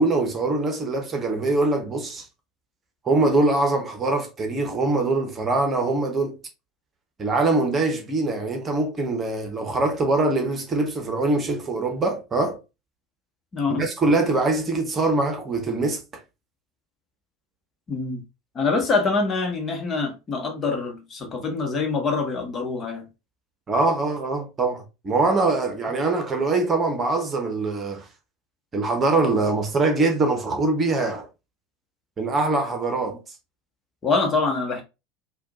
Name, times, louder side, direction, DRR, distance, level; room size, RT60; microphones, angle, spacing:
voice 1, 0.0-2.2 3.0-6.4 7.2-12.6 13.7-16.0 23.7-28.0 28.7-31.3 32.2-33.2, right 2 dB, 25° right, 1.2 m, -23 dB
voice 2, 13.5-13.8 17.9-18.2 18.5-23.1 34.0-34.8, left 4 dB, 30° left, 1.3 m, -25 dB
4.9 x 2.5 x 3.8 m
figure-of-eight pair, 75°, 0 cm